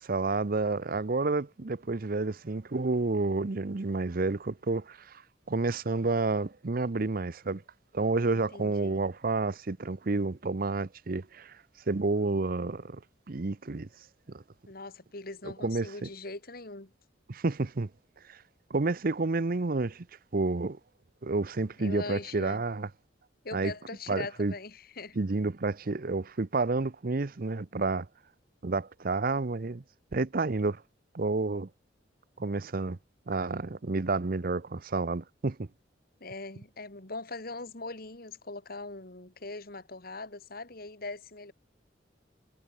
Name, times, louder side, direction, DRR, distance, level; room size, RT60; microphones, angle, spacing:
voice 1, 0.0-5.2 5.5-7.6 7.9-11.6 11.9-13.0 13.3-13.9 14.3-14.4 15.6-16.1 17.3-17.9 18.3-18.4 18.7-20.1 20.3-20.8 21.2-22.9 23.5-23.7 24.1-24.5 25.2-28.1 28.6-29.8 30.1-30.8 31.1-31.7 32.4-33.0 33.3-35.7, right 3 dB, 50° right, 0.7 m, -30 dB
voice 2, 8.3-9.0 14.7-16.9 21.8-22.6 23.4-25.2 36.2-41.5, left 3 dB, 55° left, 2.5 m, -41 dB
head